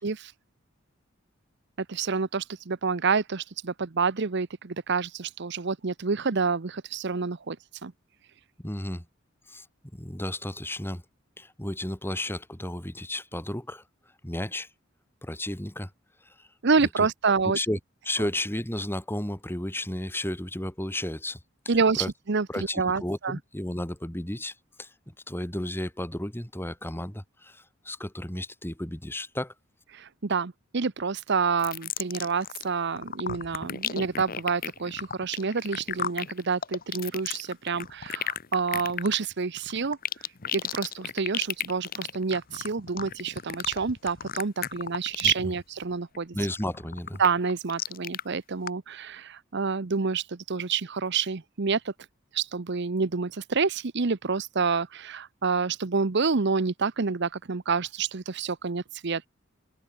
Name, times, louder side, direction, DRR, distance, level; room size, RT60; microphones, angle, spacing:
voice 1, 1.8-7.6 7.8-7.9 16.6-17.6 21.7-23.4 29.9-40.0 40.5-46.4 47.2-51.9 52.3-59.3, right 5 dB, 60° right, 0.8 m, -28 dB
voice 2, 8.6-9.0 9.5-9.7 9.9-11.0 11.4-13.8 14.2-14.7 15.2-15.9 16.2-16.5 17.0-17.1 17.5-17.8 18.0-21.4 21.9-22.1 22.5-24.9 25.3-29.5 45.2-45.3 46.3-47.2, left 1 dB, 10° left, 2.4 m, -33 dB
sound 1, 31.6-32.7 33.0-45.5 45.8-46.2 46.6-48.2 48.7-48.8, left 8 dB, 45° left, 1.1 m, -34 dB
head